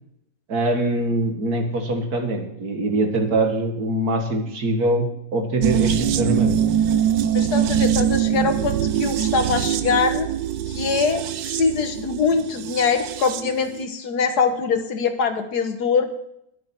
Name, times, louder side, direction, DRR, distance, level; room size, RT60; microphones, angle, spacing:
voice 1, 0.5-6.6, right 2 dB, 60° right, 4 dB, 2.3 m, -23 dB
sound 1, 5.6-13.5 13.8-13.9, right 9 dB, 85° right, 1.4 m, -23 dB
voice 2, 7.3-10.3 10.7-16.1, left 5 dB, 65° left, 8 dB, 1.8 m, -23 dB
20.5 x 7.3 x 4.5 m, 0.77 s
omnidirectional pair, 1.8 m